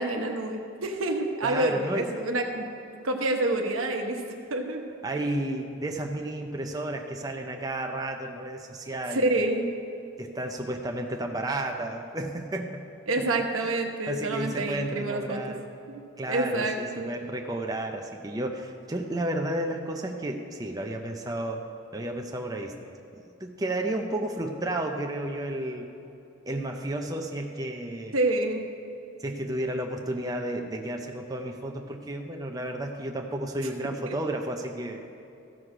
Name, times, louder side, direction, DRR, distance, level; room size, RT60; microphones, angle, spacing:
voice 1, 0.0-2.7 3.0-4.2 4.5-4.8 9.1-9.7 13.1-15.5 15.9-16.0 16.3-17.1 28.1-28.7 34.1-34.2, right 2 dB, 85° right, 3 dB, 1.0 m, -27 dB
voice 2, 1.4-2.1 5.0-9.3 10.2-12.8 14.1-15.7 16.2-21.6 21.9-22.8 23.4-25.9 26.5-28.2 29.2-35.1, right 1 dB, 20° right, 2 dB, 0.6 m, -32 dB
14.5 x 6.3 x 4.9 m, 2.8 s
head